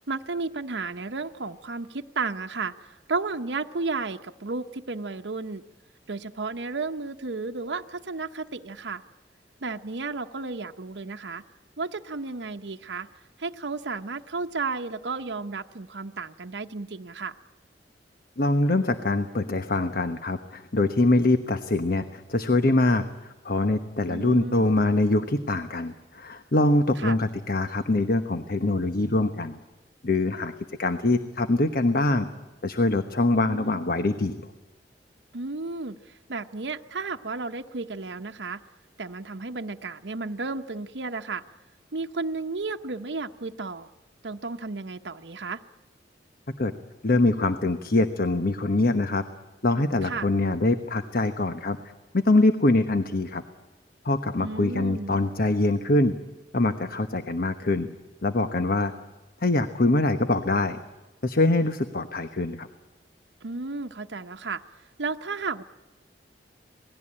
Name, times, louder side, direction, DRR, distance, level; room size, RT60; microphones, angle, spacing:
voice 1, 0.1-5.6 6.1-9.0 9.6-11.4 11.8-13.1 13.4-17.4 24.1-24.7 27.0-27.2 33.3-33.9 35.3-38.6 39.0-41.4 41.9-43.9 44.2-45.6 50.0-50.3 54.4-55.1 63.4-64.6 65.0-65.6, right 3 dB, 80° right, 5 dB, 0.9 m, -33 dB
voice 2, 18.4-29.6 30.0-30.5 30.8-32.3 32.6-34.4 46.6-46.7 47.0-49.2 49.6-51.8 52.1-53.4 54.0-56.1 56.5-57.9 58.2-58.9 59.4-60.8 61.2-62.7, left 2 dB, 55° left, 9 dB, 1.1 m, -24 dB
27.0 x 19.0 x 8.8 m, 1.1 s
head